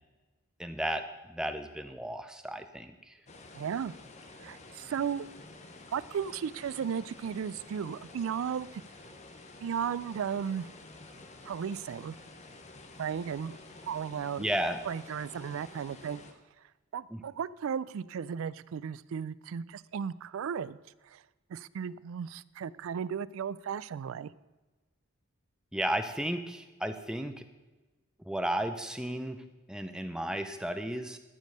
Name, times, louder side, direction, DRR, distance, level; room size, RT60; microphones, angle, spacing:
voice 1, 0.6-3.2 14.4-14.8 17.1-17.2 25.7-27.4 28.3-31.2, right 1 dB, 5° right, 8 dB, 0.5 m, -34 dB
sound 1, 3.3-16.3, left 2 dB, 30° left, 0.9 m, -50 dB
voice 2, 3.5-3.9 4.4-5.3 5.9-8.8 9.6-10.7 11.5-12.2 13.0-13.6 13.8-14.5 14.9-16.2 16.9-21.2 21.5-24.3, right 7 dB, 70° right, 19 dB, 0.3 m, -35 dB
13.5 x 5.3 x 6.3 m, 1.2 s
head